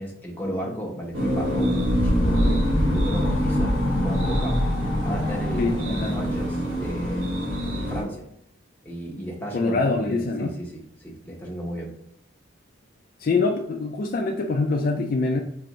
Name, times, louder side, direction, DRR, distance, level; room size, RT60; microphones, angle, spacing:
voice 1, 0.0-2.5 2.9-4.6 5.0-7.5 7.8-8.2 8.8-11.9, equal, 10° left, -3 dB, 0.9 m, -34 dB
sound 1, 1.1-8.0, equal, 90° right, 1.3 m, -26 dB
sound 2, 1.4-7.0, left 1 dB, 70° left, 0.9 m, -26 dB
voice 2, 5.6-6.1 9.5-10.5 13.2-15.4, left 3 dB, 45° left, 2 dB, 0.3 m, -24 dB
4.6 x 2.5 x 3.0 m, 0.77 s
head